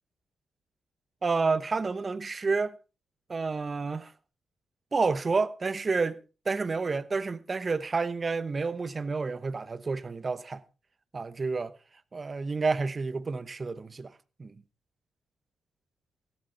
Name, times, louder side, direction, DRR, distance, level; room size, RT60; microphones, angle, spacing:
voice 1, 1.2-2.7 3.3-4.1 4.9-10.6 11.1-11.7 12.1-14.1 14.4-14.5, right 4 dB, 40° right, 1.0 m, -29 dB
16.0 x 11.5 x 4.2 m
hypercardioid pair, 50°, 0 cm